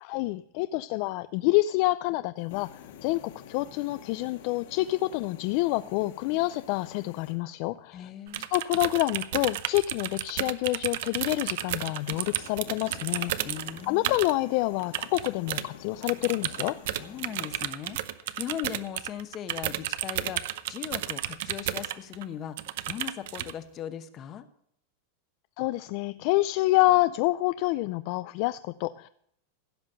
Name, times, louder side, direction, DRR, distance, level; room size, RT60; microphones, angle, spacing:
voice 1, 0.0-8.1 8.5-13.5 13.9-16.8 25.6-29.1, left 19 dB, 50° left, 14 dB, 0.3 m, -27 dB
sound 1, 2.4-7.4 11.9-17.7, left 9 dB, 70° left, 1.7 m, -49 dB
voice 2, 7.9-8.5 13.4-14.2 16.9-18.0 18.4-22.6 22.9-24.5, left 9 dB, 30° left, 11 dB, 1.0 m, -38 dB
sound 2, 8.3-14.3 14.8-15.7 16.0-22.2 22.6-23.5, right 13 dB, 65° right, 0.7 m, -32 dB
16.0 x 5.8 x 6.7 m, 0.70 s
supercardioid pair, 145°, 0 cm